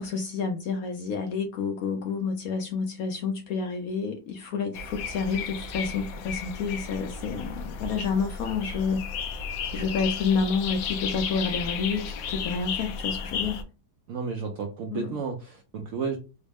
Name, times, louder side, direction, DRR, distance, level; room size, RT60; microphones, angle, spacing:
voice 1, 0.0-9.5 9.7-13.6 14.9-15.1, left 5 dB, 70° left, 0.9 m, -29 dB
sound 1, 4.7-13.6, left 6 dB, 85° left, 1.3 m, -34 dB
voice 2, 14.1-16.2, right 5 dB, 75° right, 0.7 m, -32 dB
3.8 x 2.0 x 3.3 m
omnidirectional pair, 1.9 m